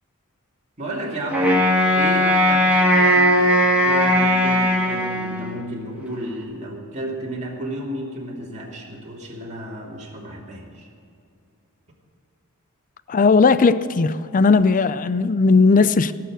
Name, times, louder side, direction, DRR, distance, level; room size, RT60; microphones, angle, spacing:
voice 1, 0.8-1.6 1.9-10.9, right 1 dB, 35° right, 2.7 m, -32 dB
Wind instrument woodwind instrument, 1.3-5.7, equal, 5° right, 2.4 m, -18 dB
voice 2, 13.1-16.1, left 4 dB, 40° left, 0.5 m, -17 dB
17.5 x 6.8 x 7.7 m
head